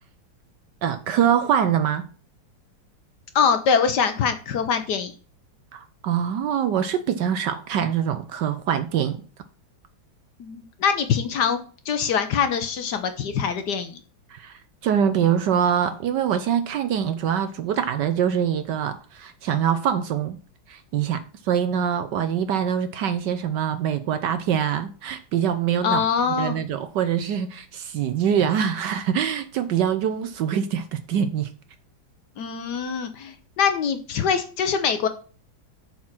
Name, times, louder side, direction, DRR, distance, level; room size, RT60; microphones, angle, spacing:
voice 1, 0.8-2.1 5.7-9.2 14.3-14.5 14.8-20.4 20.7-26.0 26.4-31.5, right 8 dB, 70° right, 1.1 m, -24 dB
voice 2, 3.3-5.1 10.4-11.6 11.9-14.0 25.8-26.6 32.4-35.1, left 6 dB, 65° left, 1.2 m, -23 dB
7.6 x 4.4 x 5.9 m
omnidirectional pair, 2.2 m